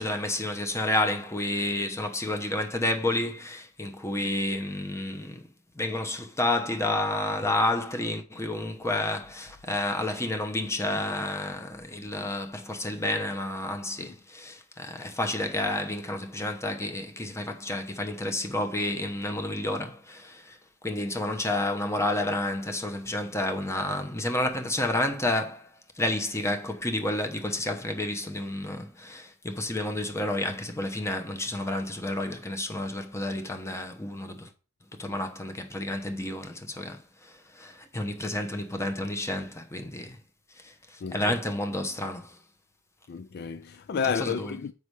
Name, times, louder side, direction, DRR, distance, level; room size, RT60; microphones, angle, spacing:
voice 1, 0.0-5.5 5.7-20.6 20.8-34.5 35.0-40.2 40.5-42.4 44.1-44.6, left 1 dB, 15° left, 1.0 m, -30 dB
voice 2, 41.0-41.3 43.1-44.7, left 6 dB, 50° left, 0.4 m, -31 dB
6.9 x 5.4 x 4.8 m
head